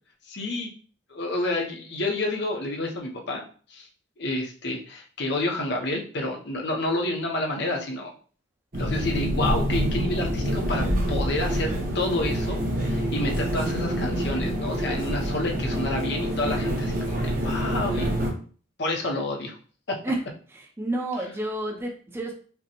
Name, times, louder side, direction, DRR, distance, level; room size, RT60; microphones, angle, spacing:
voice 1, 0.3-0.7 1.1-3.4 3.7-3.9 4.2-8.1 8.8-18.1 18.8-19.6 19.9-20.0 21.2-21.3, left 2 dB, 55° left, 1 dB, 0.8 m, -29 dB
sound 1, 8.7-18.3, equal, 45° right, 0.9 m, -26 dB
voice 2, 20.5-22.3, right 1 dB, 10° right, -1 dB, 0.6 m, -30 dB
5.2 x 2.2 x 2.9 m, 0.42 s
head